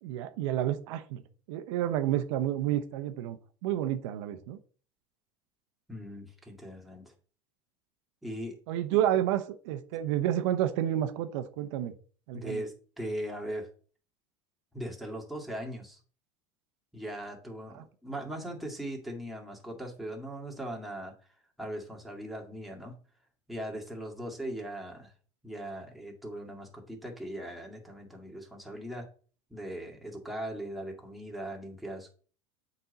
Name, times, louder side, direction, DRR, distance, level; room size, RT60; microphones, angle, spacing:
voice 1, 0.0-1.2 1.5-3.4 3.6-4.6 8.7-11.9 12.3-12.6 17.7-17.8, right 12 dB, 75° right, 0.9 m, -30 dB
voice 2, 5.9-7.1 8.2-8.6 8.9-9.0 12.3-13.7 14.7-16.0 16.9-21.1 21.6-23.0 23.5-25.1 25.4-29.1 29.5-32.1, right 1 dB, ahead, 2.1 m, -39 dB
7.9 x 5.3 x 4.1 m
supercardioid pair, 120°, 16 cm